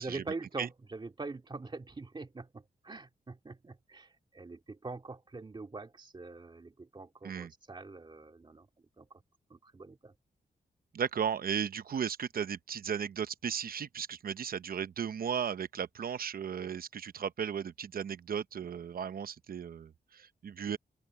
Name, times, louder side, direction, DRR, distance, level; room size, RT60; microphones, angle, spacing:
voice 1, 0.0-8.7 9.0-9.1 9.5-10.1, right 3 dB, 30° right, 2.2 m, -44 dB
voice 2, 10.9-20.8, right 7 dB, 70° right, 0.8 m, -35 dB
open air
wide cardioid pair, 115°, 16 cm